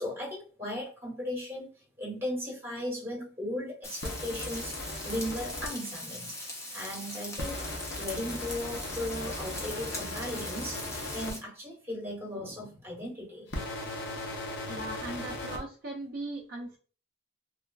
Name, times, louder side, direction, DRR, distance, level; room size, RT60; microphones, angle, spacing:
voice 1, 0.0-1.7 2.0-6.4 6.7-13.5, left 1 dB, 10° right, -4 dB, 1.1 m, -37 dB
Frying (food), 3.8-11.4, left 1 dB, 15° left, 0.5 m, -40 dB
sound 1, 4.0-5.7 7.4-11.3 13.5-15.6, left 1 dB, 60° left, 0.7 m, -38 dB
voice 2, 14.7-16.8, right 2 dB, 45° right, 0 dB, 0.3 m, -38 dB
3.1 x 2.3 x 2.3 m, 0.38 s
head